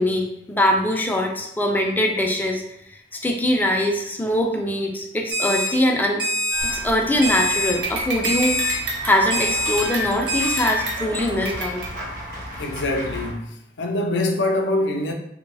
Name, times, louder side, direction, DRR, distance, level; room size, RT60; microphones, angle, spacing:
voice 1, 0.0-2.6 3.2-6.3 6.6-8.7 9.0-11.8, left 1 dB, 10° left, 0.4 m, -22 dB
Alarm, 5.3-5.7 6.2-6.7 7.2-7.7 8.2-8.7 9.3-9.8 10.3-10.6, equal, 25° right, 0.7 m, -24 dB
sound 1, 6.5-7.4 7.8-11.9, right 1 dB, 80° right, 0.7 m, -30 dB
Run / Walk footsteps / Bell, 6.6-13.3, equal, 50° right, 0.9 m, -35 dB
voice 2, 12.6-15.1, left 1 dB, 70° left, 0.5 m, -24 dB
3.3 x 2.2 x 3.3 m
head